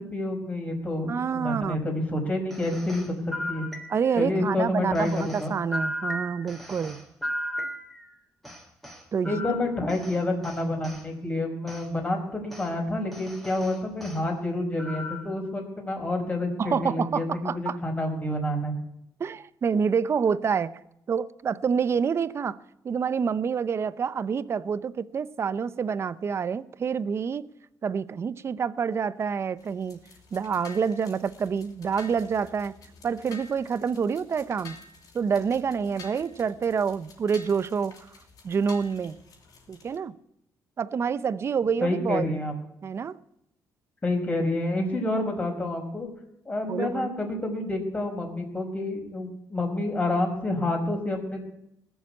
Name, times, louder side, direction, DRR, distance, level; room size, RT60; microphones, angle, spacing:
voice 1, 0.0-3.2 3.5-3.7 4.2-5.5 9.2-18.7 41.8-42.5 44.0-46.1 46.4-51.4, left 2 dB, 20° left, 4.9 m, -28 dB
voice 2, 1.1-1.8 3.9-7.0 9.1-9.4 16.6-17.8 19.2-20.7 21.1-22.6 22.8-27.4 27.8-30.0 30.3-32.8 33.0-34.8 35.1-37.9 38.4-39.2 39.7-40.1 40.8-42.4 42.8-43.2 46.7-47.1, right 6 dB, 40° right, 0.7 m, -27 dB
sound 1, 2.5-4.3 4.9-8.1 8.4-11.0 11.7-11.9 12.5-12.7 13.1-14.2 14.8-15.4, equal, ahead, 3.0 m, -36 dB
sound 2, 29.6-40.0, left 4 dB, 60° left, 6.2 m, -50 dB
19.5 x 7.2 x 8.4 m
cardioid pair, 105°, 7 cm